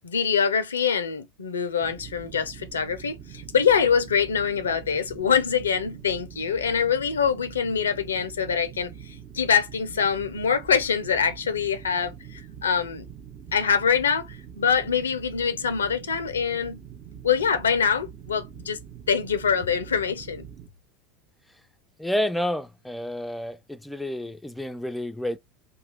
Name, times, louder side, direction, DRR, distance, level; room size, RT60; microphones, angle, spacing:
voice 1, 0.0-13.1 13.5-16.8 17.2-18.8 19.1-20.5, left 7 dB, 85° left, 0.5 m, -24 dB
sound 1, 1.8-20.7, right 8 dB, 45° right, 0.8 m, -44 dB
voice 2, 22.0-25.4, left 1 dB, 5° left, 0.4 m, -29 dB
2.7 x 2.4 x 3.1 m
hypercardioid pair, 85°, 0 cm